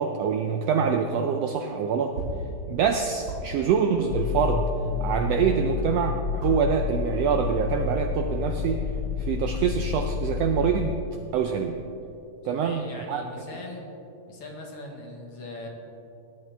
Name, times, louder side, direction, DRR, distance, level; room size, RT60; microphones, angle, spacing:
voice 1, 0.0-2.1 2.7-4.7 5.0-8.8 9.2-11.0 11.3-11.8 12.4-12.8 13.1-13.2, right 6 dB, 80° right, 5 dB, 1.4 m, -25 dB
sound 1, 2.1-6.0 6.3-6.7 6.9-7.5 7.8-8.3, right 1 dB, 55° right, 3.7 m, -37 dB
sound 2, 4.1-11.0, left 6 dB, 80° left, 1.7 m, -29 dB
voice 2, 12.4-13.9 14.3-15.7, left 2 dB, 55° left, 0 dB, 2.2 m, -40 dB
18.5 x 10.5 x 3.4 m, 2.8 s
omnidirectional pair, 3.4 m